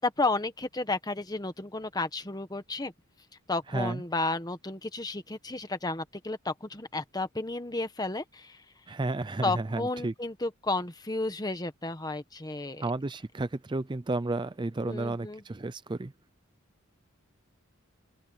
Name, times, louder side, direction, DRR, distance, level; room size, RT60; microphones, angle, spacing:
voice 1, 0.0-2.9 3.5-8.6 9.4-12.8 14.8-15.4, left 2 dB, 20° left, 1.3 m, -32 dB
voice 2, 8.9-10.1 12.8-16.1, right 2 dB, 20° right, 0.4 m, -32 dB
open air
head